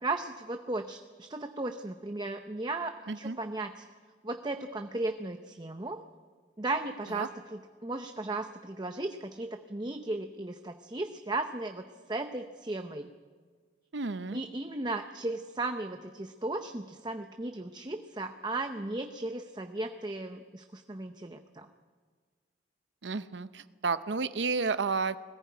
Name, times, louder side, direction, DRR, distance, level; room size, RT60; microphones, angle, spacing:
voice 1, 0.0-3.8 4.2-6.0 6.6-11.8 12.1-13.1 14.3-21.7, right 2 dB, 25° right, 6 dB, 0.7 m, -36 dB
voice 2, 13.9-14.4 23.0-25.2, right 4 dB, 80° right, 13 dB, 0.7 m, -31 dB
21.0 x 15.0 x 9.3 m, 1.5 s
head